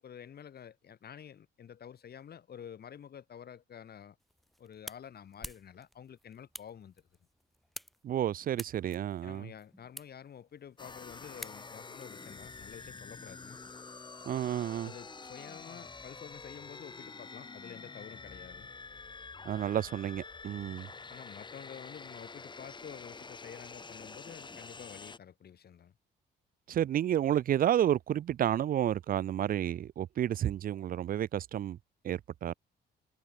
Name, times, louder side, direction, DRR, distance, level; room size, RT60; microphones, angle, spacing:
voice 1, 0.0-4.2 4.6-7.0 9.2-13.6 14.9-18.7 21.1-25.9, left 8 dB, 50° left, 1.7 m, -49 dB
sound 1, 4.2-12.0, equal, ahead, 2.7 m, -50 dB
voice 2, 8.0-9.5 14.3-14.9 19.5-20.9 26.7-31.8 32.0-32.5, right 11 dB, 45° right, 0.4 m, -31 dB
sound 2, 10.8-25.2, left 4 dB, 25° left, 1.1 m, -47 dB
cardioid pair, 90°, 20 cm